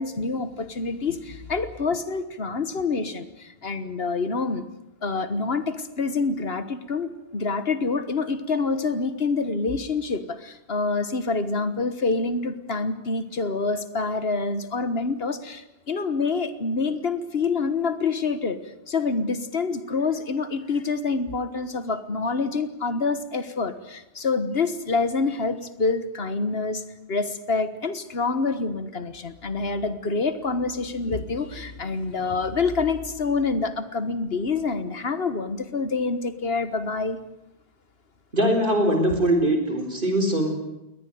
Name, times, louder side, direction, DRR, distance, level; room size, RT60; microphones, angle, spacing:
voice 1, 0.0-4.6 5.0-18.6 18.9-26.8 27.1-37.2 39.1-39.2, left 4 dB, 65° left, 12 dB, 1.6 m, -27 dB
voice 2, 38.3-40.6, right 1 dB, 50° right, 5 dB, 4.9 m, -22 dB
22.5 x 19.0 x 9.4 m, 0.91 s
omnidirectional pair, 1.1 m